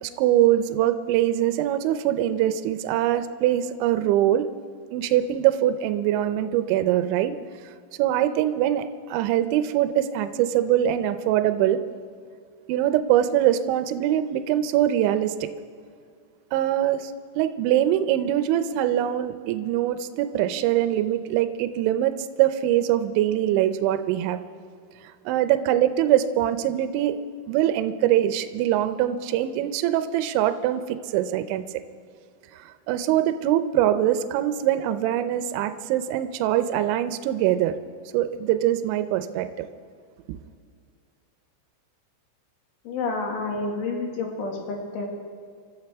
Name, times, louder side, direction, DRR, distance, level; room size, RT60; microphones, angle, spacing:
voice 1, 0.0-4.5 4.9-7.4 8.0-11.8 12.7-15.5 16.5-24.4 25.3-27.2 27.5-31.6 32.6-37.8 38.1-39.7 40.3-40.4, right 12 dB, 80° right, 10 dB, 2.9 m, -23 dB
voice 2, 42.9-45.1, left 3 dB, 75° left, 0 dB, 4.4 m, -29 dB
27.0 x 13.0 x 3.5 m, 2.2 s
omnidirectional pair, 5.7 m